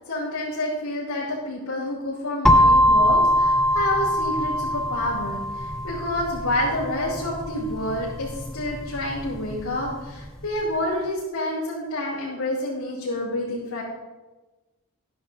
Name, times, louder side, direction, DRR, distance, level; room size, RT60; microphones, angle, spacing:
voice 1, 0.1-13.8, left 1 dB, 80° left, -11 dB, 5.3 m, -28 dB
sound 1, 2.5-10.3, equal, 5° left, 0.6 m, -22 dB
14.5 x 11.5 x 4.2 m, 1.2 s
head